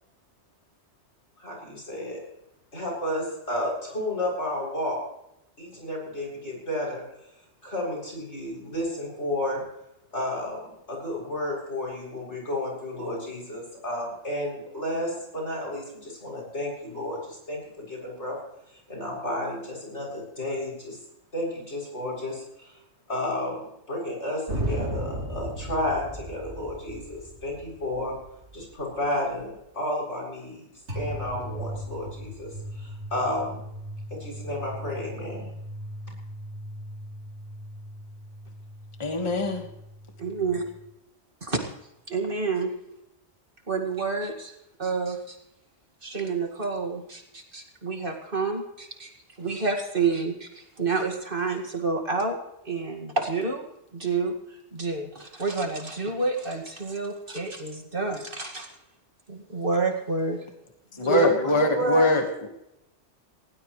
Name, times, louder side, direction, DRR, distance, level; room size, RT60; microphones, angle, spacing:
voice 1, 1.4-2.2 2.7-5.0 5.6-7.0 7.6-9.6 10.1-18.4 18.9-21.0 21.3-22.8 23.1-28.2 28.5-30.6 30.9-33.6 34.1-35.5 61.0-62.2, left 1 dB, 80° left, -2 dB, 7.6 m, -31 dB
sound 1, 24.5-29.6 30.9-40.9, right 1 dB, 85° right, 3.8 m, -37 dB
voice 2, 39.0-39.7 61.0-62.2, left 1 dB, 25° left, 3 dB, 1.6 m, -22 dB
voice 3, 40.2-40.6 41.4-41.6 42.1-42.7 43.7-45.4 46.0-49.1 49.4-52.4 52.6-53.6 53.9-58.7 59.3-60.4 61.1-61.2, right 4 dB, 50° right, 3 dB, 2.3 m, -29 dB
20.0 x 17.5 x 3.2 m, 0.85 s
omnidirectional pair, 1.2 m